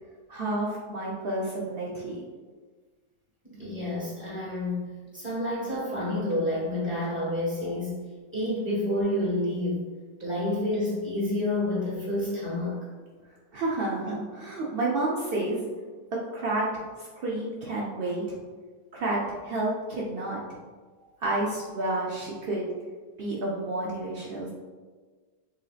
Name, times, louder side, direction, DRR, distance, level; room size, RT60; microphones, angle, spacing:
voice 1, 0.3-2.2 13.5-15.7 16.3-16.7 17.0-18.4 18.9-20.4 21.2-22.7 23.2-24.5, right 2 dB, 80° right, -4 dB, 0.5 m, -30 dB
voice 2, 3.5-4.9 5.1-8.0 8.3-9.9 10.2-12.8, left 1 dB, 10° right, -6 dB, 1.1 m, -29 dB
5.9 x 2.7 x 2.4 m, 1.4 s
omnidirectional pair, 1.7 m